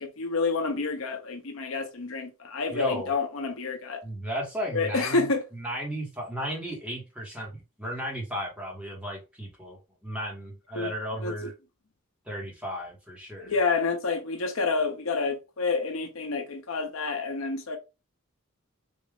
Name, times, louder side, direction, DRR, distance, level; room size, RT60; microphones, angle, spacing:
voice 1, 0.0-4.0 4.7-5.4 10.7-10.9 11.2-11.5 13.4-17.8, left 4 dB, 70° left, 0.7 m, -29 dB
voice 2, 2.7-3.1 4.0-11.5 12.2-13.6, equal, 5° right, 1.2 m, -35 dB
3.5 x 2.5 x 3.3 m
head